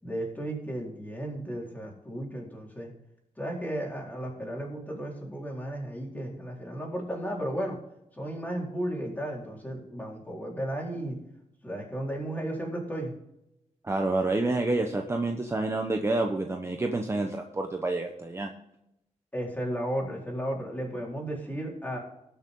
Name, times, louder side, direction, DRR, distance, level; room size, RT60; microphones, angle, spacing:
voice 1, 0.0-2.9 3.4-7.8 8.1-11.2 11.6-13.1 19.3-22.0, right 1 dB, 15° left, -2 dB, 4.3 m, -34 dB
voice 2, 13.8-18.5, right 2 dB, 20° right, 3 dB, 1.1 m, -28 dB
19.5 x 6.9 x 3.9 m, 0.83 s
wide cardioid pair, 120°, 13 cm